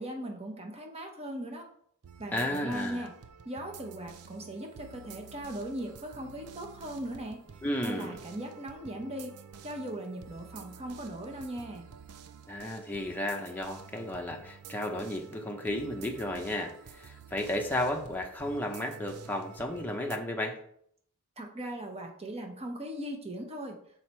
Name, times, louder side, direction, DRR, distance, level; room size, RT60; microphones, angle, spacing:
voice 1, 0.0-1.7 2.2-3.1 3.4-7.4 7.8-9.3 9.6-11.8 21.4-23.7, right 1 dB, 30° right, 3 dB, 1.1 m, -39 dB
sound 1, 2.0-20.2, right 6 dB, 80° right, 0.5 m, -50 dB
voice 2, 2.3-3.1 7.6-8.2 12.5-20.6, left 1 dB, 10° left, 1 dB, 0.8 m, -33 dB
6.3 x 4.2 x 4.4 m, 0.65 s
head